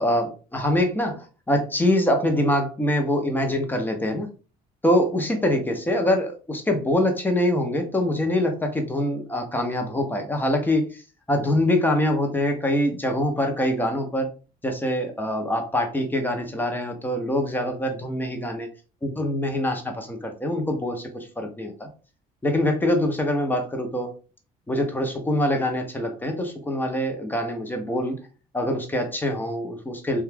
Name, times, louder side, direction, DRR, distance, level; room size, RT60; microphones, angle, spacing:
voice 1, 0.0-4.3 4.8-10.9 11.3-14.3 14.6-18.7 19.0-21.9 22.4-24.1 24.7-28.2 28.5-30.2, left 1 dB, 10° left, 4 dB, 0.7 m, -24 dB
2.5 x 2.3 x 3.3 m, 0.36 s
cardioid pair, 110°, 17 cm